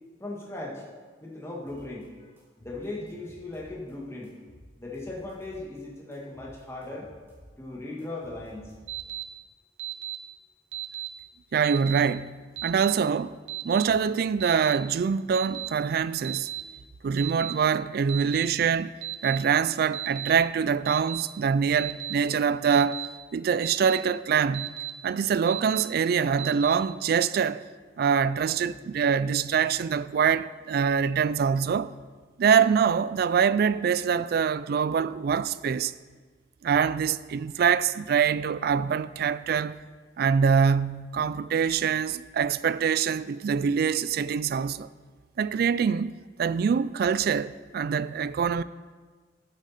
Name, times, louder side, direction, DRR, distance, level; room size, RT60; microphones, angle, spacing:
voice 1, 0.2-0.8 1.2-2.3 2.6-4.3 4.8-7.1 7.6-8.7, left 2 dB, 15° left, 1.8 m, -38 dB
sound 1, 1.7-2.1 2.4-3.9 4.2-5.8 6.1-9.2, equal, 15° right, 2.8 m, -53 dB
Alarm, 8.9-9.2 9.8-10.2 10.7-11.1 11.6-12.0 12.6-12.9 13.5-13.8 14.4-14.8 15.3-15.7 16.2-16.6 17.2-17.5 18.1-18.4 19.0-19.4 19.9-20.3 20.9-21.2 21.8-22.1 22.7-23.1 23.6-24.0 24.5-24.9 25.5-25.8 26.4-26.7, right 14 dB, 80° right, 1.1 m, -34 dB
voice 2, 11.5-12.4 12.6-13.3 13.6-16.5 17.0-18.9 19.2-23.0 23.3-24.7 25.0-27.6 28.0-31.9 32.4-35.9 36.6-39.8 40.2-44.9 45.4-46.1 46.4-48.6, right 6 dB, 55° right, 0.3 m, -24 dB
11.5 x 8.3 x 4.2 m
head